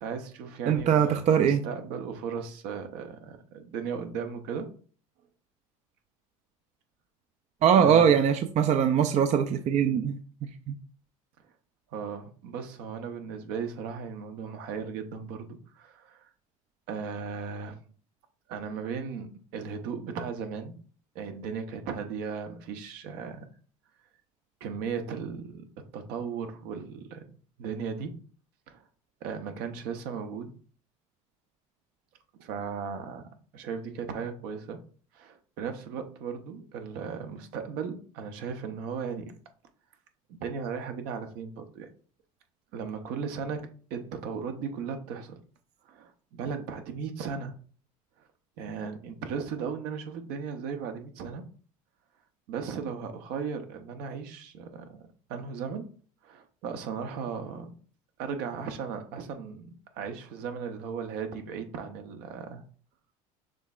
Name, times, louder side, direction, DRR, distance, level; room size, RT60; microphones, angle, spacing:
voice 1, 0.0-4.7 7.8-8.2 11.9-16.3 16.9-17.8 18.5-20.7 21.1-23.5 24.6-25.6 25.9-27.2 27.6-28.2 28.7-28.8 29.2-30.6 32.4-34.8 35.1-39.3 40.3-41.9 42.7-45.4 45.8-47.5 48.2-48.3 48.6-51.4 52.5-55.9 56.2-57.7 58.2-62.6, right 6 dB, 65° right, 6 dB, 0.9 m, -36 dB
voice 2, 0.7-1.6 7.6-10.2 10.7-10.8, right 8 dB, 40° right, 7 dB, 0.5 m, -22 dB
6.3 x 3.5 x 2.4 m, 0.43 s
hypercardioid pair, 85°, 18 cm